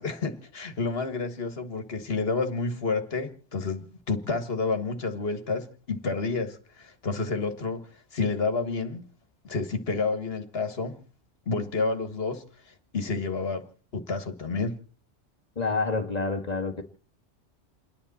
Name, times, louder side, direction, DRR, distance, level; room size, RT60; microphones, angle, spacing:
voice 1, 0.0-7.8 8.1-9.0 9.4-11.0 11.5-12.4 12.9-13.6 13.9-14.8, left 3 dB, 60° left, 1.9 m, -29 dB
voice 2, 15.5-16.8, left 3 dB, 35° left, 1.6 m, -28 dB
29.0 x 10.5 x 4.2 m
omnidirectional pair, 1.2 m